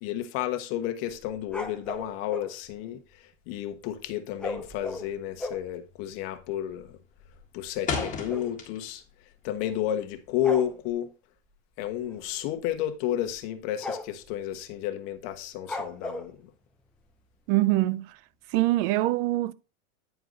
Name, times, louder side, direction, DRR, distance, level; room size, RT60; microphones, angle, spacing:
voice 1, 0.0-3.0 3.5-7.0 7.5-9.0 9.4-11.1 11.8-16.5, left 11 dB, 50° left, 1.3 m, -31 dB
sound 1, 1.2-2.5 4.4-5.7 6.4-6.5 6.7-6.9 7.2-8.6 9.7-10.0 10.4-10.7 12.1-12.3 12.7-12.8 13.3-13.4 13.8-14.3 15.7-16.3, left 2 dB, 5° left, 0.5 m, -36 dB
sound 2, 4.7-5.0 5.3-5.7 6.0-6.5 6.8-9.1 9.4-10.9, left 5 dB, 20° left, 1.7 m, -35 dB
voice 2, 17.5-18.1 18.5-19.5, right 17 dB, 45° right, 0.5 m, -23 dB
9.5 x 4.7 x 3.9 m
supercardioid pair, 150°, 38 cm